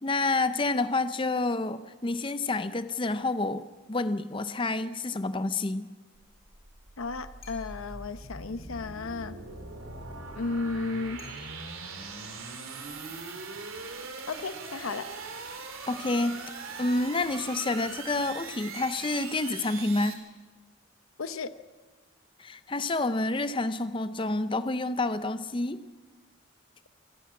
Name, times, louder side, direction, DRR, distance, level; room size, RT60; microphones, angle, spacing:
voice 1, 0.0-5.9 15.9-16.4 16.8-20.2 22.4-25.8, left 2 dB, 25° left, 12 dB, 0.5 m, -29 dB
sound 1, 6.1-20.1, right 4 dB, 85° right, 3.2 m, -41 dB
voice 2, 7.0-9.4 10.3-11.3 14.3-15.1 21.2-21.5, left 3 dB, 90° left, 12 dB, 0.8 m, -34 dB
sound 2, 7.4-8.0 11.2-11.9 14.3-15.1, left 4 dB, 45° left, 6.7 m, -55 dB
27.0 x 12.0 x 8.4 m, 1.4 s
head